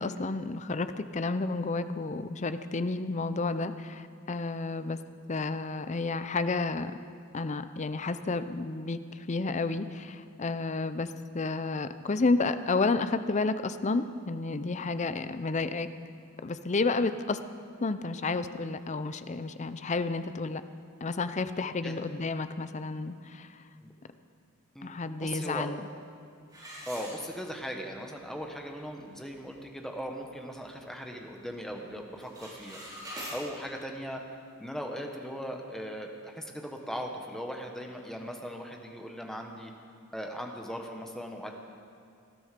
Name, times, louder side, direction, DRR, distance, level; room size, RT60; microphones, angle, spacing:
voice 1, 0.0-5.0 5.3-6.9 7.3-15.9 16.4-17.4 17.8-20.6 21.0-23.6 24.8-25.9, left 3 dB, 35° left, 11 dB, 0.6 m, -31 dB
voice 2, 25.2-25.7 26.9-32.8 33.3-34.2 34.6-39.7 40.1-41.5, equal, ahead, 2 dB, 1.3 m, -39 dB
sound 1, 26.5-27.8 28.2-28.3 28.9-29.0 29.4-29.7 30.1-31.2 31.5-31.8 32.1-33.4, equal, 20° right, 5.1 m, -44 dB
19.5 x 13.0 x 5.2 m, 2.4 s
head